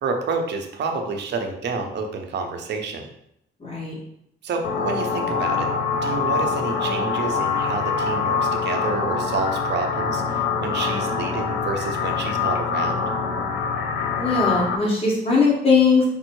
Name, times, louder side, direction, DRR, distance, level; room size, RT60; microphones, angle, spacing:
voice 1, 0.0-3.1 4.4-5.7 6.0-13.0, right 4 dB, 60° right, 4 dB, 0.8 m, -29 dB
voice 2, 3.6-3.9 14.2-16.0, left 4 dB, 30° left, -4 dB, 1.3 m, -19 dB
sound 1, 4.6-14.8, left 5 dB, 85° left, 0.7 m, -24 dB
5.2 x 2.0 x 4.6 m, 0.76 s
cardioid pair, 90°, 20 cm